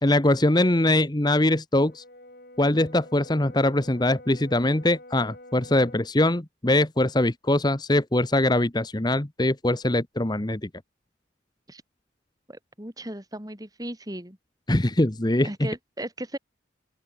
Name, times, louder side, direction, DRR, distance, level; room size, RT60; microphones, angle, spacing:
voice 1, 0.0-2.0 2.6-10.7 14.7-15.7, left 1 dB, 20° left, 1.0 m, -22 dB
Brass instrument, 1.8-6.1, left 1 dB, 50° left, 7.2 m, -47 dB
voice 2, 12.5-14.4 15.4-16.4, right 1 dB, 20° right, 3.0 m, -36 dB
open air
head